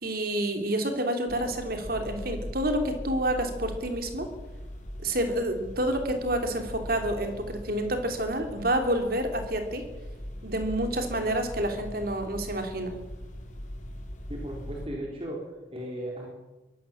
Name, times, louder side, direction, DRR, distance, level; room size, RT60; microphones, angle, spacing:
voice 1, 0.0-4.3 5.0-9.9 10.4-12.9, right 1 dB, 50° right, 5 dB, 3.3 m, -28 dB
sound 1, 1.3-14.9, equal, 40° left, 4.0 m, -41 dB
voice 2, 14.3-16.3, right 1 dB, 30° right, -1 dB, 3.9 m, -36 dB
24.0 x 17.5 x 7.4 m, 1.2 s
head